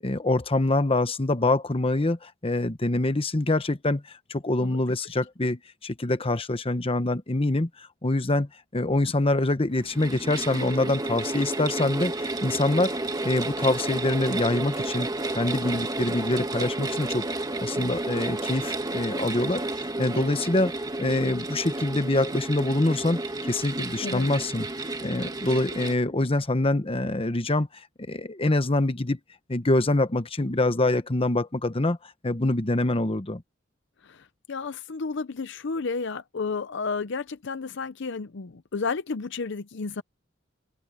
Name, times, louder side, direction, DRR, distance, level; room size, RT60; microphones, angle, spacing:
voice 1, 0.0-12.9 13.2-17.3 17.6-20.7 21.0-24.7 25.0-29.2 29.5-33.4, left 2 dB, 30° left, 1.0 m, -25 dB
sound 1, 9.7-25.9, right 2 dB, 20° right, 1.5 m, -31 dB
voice 2, 34.0-40.0, left 4 dB, 65° left, 0.7 m, -32 dB
open air
head